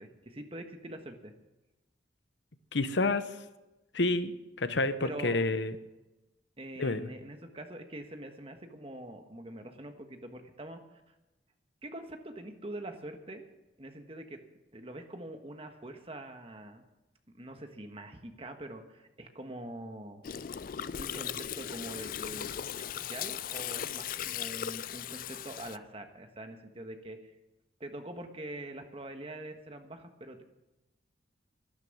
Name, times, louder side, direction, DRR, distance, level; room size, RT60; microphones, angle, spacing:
voice 1, 0.0-1.3 5.0-5.4 6.6-10.8 11.8-13.4 13.8-14.4 14.7-16.8 17.3-20.2 21.0-22.5 22.8-27.3 27.8-30.4, right 1 dB, 30° right, 6 dB, 1.4 m, -44 dB
voice 2, 2.7-3.2 3.9-4.3 4.6-5.7 6.8-7.1, left 2 dB, 80° left, 12 dB, 1.0 m, -28 dB
Gurgling, 20.2-25.8, left 9 dB, 50° left, 0.4 m, -38 dB
12.5 x 12.0 x 7.2 m, 1.0 s
head